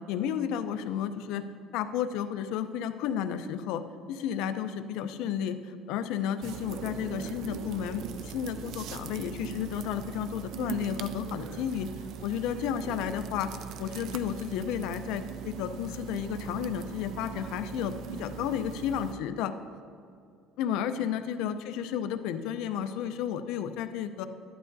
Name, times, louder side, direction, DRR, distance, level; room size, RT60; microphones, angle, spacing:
voice 1, 0.1-1.4 1.7-11.9 12.2-13.5 13.8-17.9 18.2-19.5 20.6-24.3, left 9 dB, 65° left, 10 dB, 0.5 m, -32 dB
sound 1, 6.4-19.1, right 7 dB, 50° right, 0.4 m, -40 dB
13.0 x 11.0 x 2.7 m, 2.4 s
cardioid pair, 175°, 0 cm